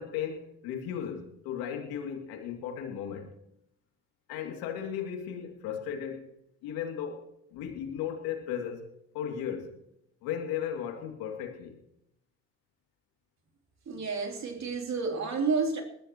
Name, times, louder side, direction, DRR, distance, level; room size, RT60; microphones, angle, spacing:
voice 1, 0.0-3.3 4.3-6.3 6.6-7.2 7.5-8.9 9.1-9.7 10.2-11.8, left 8 dB, 75° left, 2.8 m, -35 dB
voice 2, 13.9-15.8, right 4 dB, 45° right, 3.5 m, -30 dB
21.0 x 13.5 x 3.1 m
hypercardioid pair, 55°, 37 cm